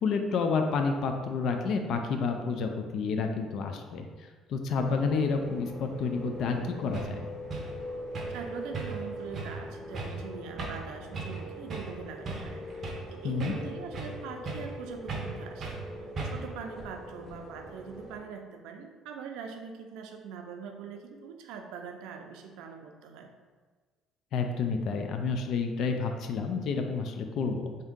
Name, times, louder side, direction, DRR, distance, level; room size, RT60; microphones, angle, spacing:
voice 1, 0.0-4.1 4.5-7.2 13.2-13.5 24.3-27.7, left 4 dB, 50° left, 5 dB, 0.3 m, -29 dB
sound 1, 4.8-18.2, equal, 5° right, 0.9 m, -42 dB
sound 2, 6.5-6.6 6.9-7.1 7.5-7.7 8.1-8.4 8.7-9.1 9.3-9.6 9.9-10.2 10.6-10.9 11.1-11.4 11.7-11.9 12.2-13.1 13.4-14.2 14.4-14.8 15.1-15.3 15.6-15.8 16.2-16.5, right 4 dB, 30° right, 0.6 m, -37 dB
voice 2, 8.3-23.3, right 6 dB, 85° right, 4 dB, 0.4 m, -43 dB
3.5 x 2.7 x 3.6 m, 1.4 s
cardioid pair, 170°, 0 cm